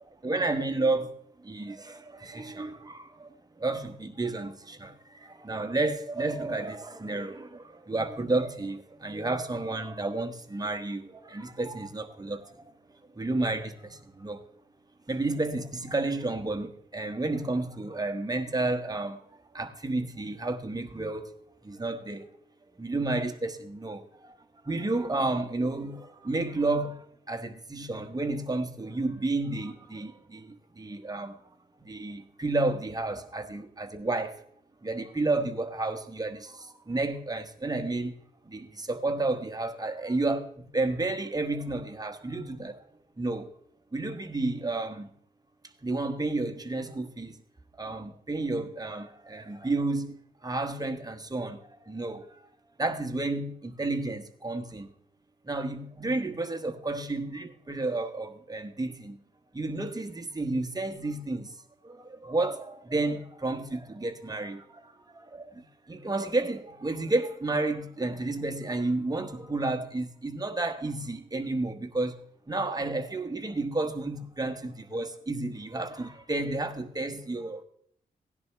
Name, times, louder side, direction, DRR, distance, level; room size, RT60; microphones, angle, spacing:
voice 1, 0.2-12.6 13.0-14.4 15.1-19.2 19.5-21.3 21.6-22.2 22.8-24.4 24.6-31.4 31.8-34.4 34.8-38.1 38.4-42.8 43.2-43.5 43.9-45.1 45.8-47.4 47.7-50.1 50.4-52.4 52.8-54.9 55.4-59.2 59.5-61.5 61.8-72.2 72.5-77.6, right 2 dB, 20° right, 1.2 m, -31 dB
17.0 x 10.5 x 3.4 m
cardioid pair, 80°, 17 cm